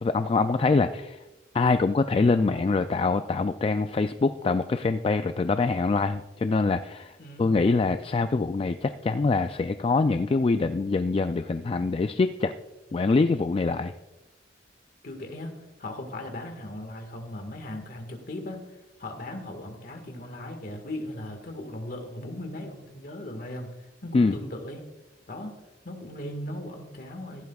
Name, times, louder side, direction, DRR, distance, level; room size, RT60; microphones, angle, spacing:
voice 1, 0.0-1.2 1.5-12.5 12.9-13.9 24.1-24.4, left 3 dB, 30° left, 9 dB, 0.3 m, -24 dB
voice 2, 7.2-7.5 15.0-18.6 19.0-23.7 24.0-24.9 25.3-25.5 25.8-27.5, left 1 dB, 50° left, 5 dB, 1.7 m, -38 dB
15.0 x 11.5 x 2.4 m, 1.1 s
head